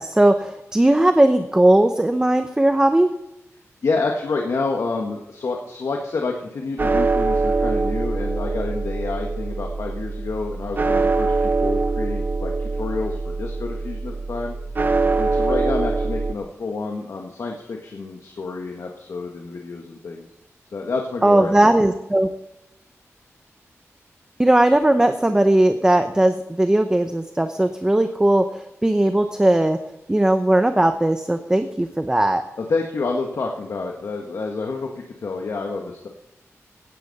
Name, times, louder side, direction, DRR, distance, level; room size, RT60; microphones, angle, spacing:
voice 1, 0.0-3.1 21.2-22.3 24.4-29.8 30.1-32.4, right 1 dB, 15° right, 7 dB, 0.8 m, -18 dB
voice 2, 3.8-14.5 15.2-20.3 20.7-21.7 32.6-36.1, left 3 dB, 70° left, 1 dB, 1.6 m, -28 dB
sound 1, 6.8-16.3, right 3 dB, 40° right, 1.0 m, -23 dB
16.5 x 10.5 x 4.2 m, 0.88 s
wide cardioid pair, 130°, 5 cm